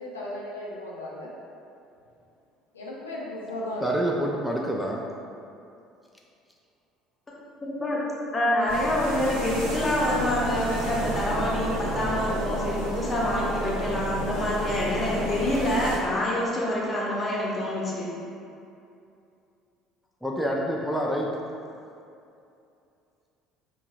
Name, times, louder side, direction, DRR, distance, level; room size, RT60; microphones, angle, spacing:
voice 1, 0.0-1.3 2.7-3.9, left 1 dB, 80° left, -5 dB, 0.5 m, -35 dB
voice 2, 3.8-5.0 20.2-21.3, equal, ahead, -2 dB, 0.4 m, -27 dB
voice 3, 7.6-8.0 8.3-18.1, left 1 dB, 25° left, -5 dB, 0.9 m, -26 dB
sound 1, 8.7-16.0, right 1 dB, 75° right, 0.7 m, -31 dB
5.5 x 2.3 x 2.3 m, 2.6 s
figure-of-eight pair, 60°, 0 cm